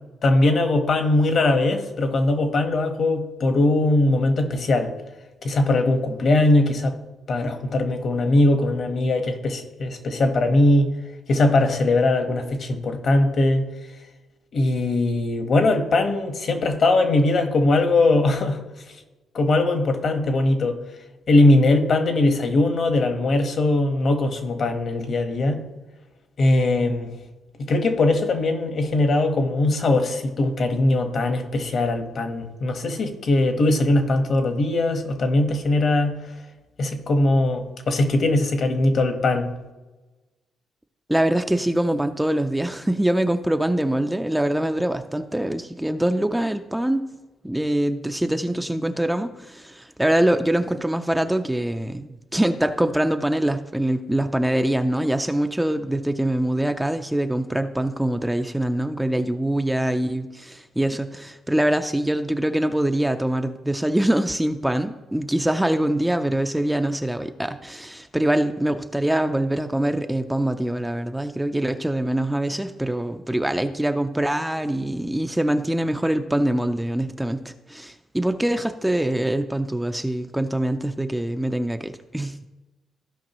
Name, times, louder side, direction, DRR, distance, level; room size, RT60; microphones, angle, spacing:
voice 1, 0.2-4.9 5.4-7.0 7.3-10.9 11.3-13.7 14.5-18.6 19.3-20.8 21.3-25.6 26.4-27.1 27.6-36.2 36.8-39.5, left 2 dB, 55° left, 6 dB, 1.3 m, -20 dB
voice 2, 41.1-47.0 47.4-82.5, right 1 dB, 5° right, 7 dB, 0.5 m, -24 dB
15.0 x 5.3 x 3.0 m, 1.2 s
cardioid pair, 90°, 0 cm